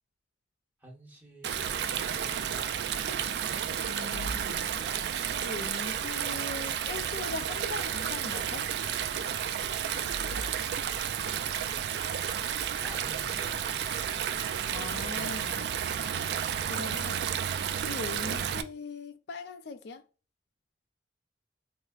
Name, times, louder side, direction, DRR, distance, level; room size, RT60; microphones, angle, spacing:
voice 1, 0.8-1.6 10.8-11.8 12.8-14.0, equal, 10° right, 1.0 m, -51 dB
Stream, 1.4-18.6, right 8 dB, 65° right, 0.3 m, -32 dB
voice 2, 3.8-4.7 5.4-8.7 14.7-15.7 16.7-17.3 17.8-20.0, left 4 dB, 70° left, 0.4 m, -40 dB
4.7 x 2.0 x 2.3 m
head